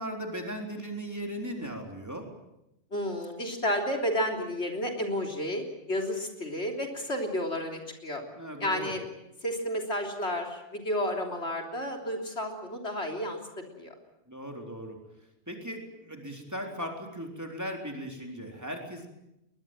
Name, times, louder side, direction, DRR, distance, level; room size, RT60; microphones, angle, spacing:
voice 1, 0.0-2.3 8.4-8.9 14.3-15.0 15.5-19.1, equal, 15° right, 2 dB, 3.9 m, -37 dB
voice 2, 2.9-8.2 8.6-9.0 9.4-13.9, equal, 70° left, 2 dB, 3.8 m, -31 dB
21.5 x 21.5 x 9.0 m, 0.87 s
omnidirectional pair, 1.2 m